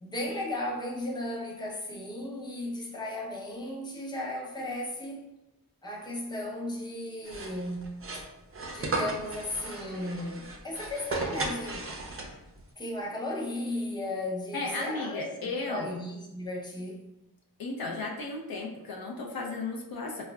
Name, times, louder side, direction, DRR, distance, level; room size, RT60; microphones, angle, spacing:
voice 1, 0.0-5.2 5.8-7.9 8.7-11.9 12.8-15.2 15.7-17.0, left 1 dB, 10° left, -2 dB, 0.5 m, -35 dB
sound 1, 7.2-12.6, right 2 dB, 35° right, 0.4 m, -36 dB
voice 2, 14.5-15.9 17.6-20.2, left 3 dB, 65° left, 0 dB, 0.5 m, -34 dB
3.6 x 2.0 x 2.2 m, 0.92 s
wide cardioid pair, 80°, 39 cm